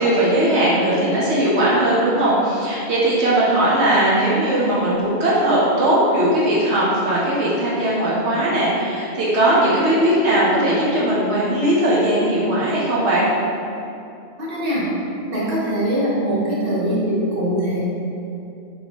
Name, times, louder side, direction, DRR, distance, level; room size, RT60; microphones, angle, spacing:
voice 1, 0.0-13.3, right 1 dB, 85° right, -7 dB, 1.1 m, -18 dB
voice 2, 14.4-14.9 15.3-17.8, equal, 55° right, -7 dB, 1.2 m, -22 dB
3.9 x 3.5 x 3.0 m, 2.7 s
omnidirectional pair, 1.1 m